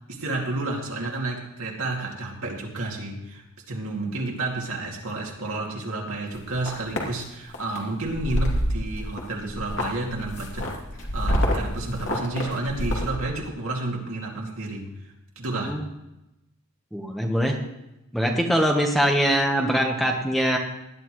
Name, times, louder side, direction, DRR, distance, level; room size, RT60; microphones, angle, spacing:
voice 1, 0.1-10.7 11.1-14.9 15.4-15.8, right 2 dB, 65° right, -1 dB, 2.5 m, -31 dB
sound 1, 6.3-7.1 7.5-7.8 8.1-9.2 9.5-13.1, equal, 55° left, 2.8 m, -27 dB
voice 2, 16.9-17.6 18.1-20.6, equal, ahead, 1 dB, 1.2 m, -23 dB
18.5 x 11.0 x 3.2 m, 0.91 s
head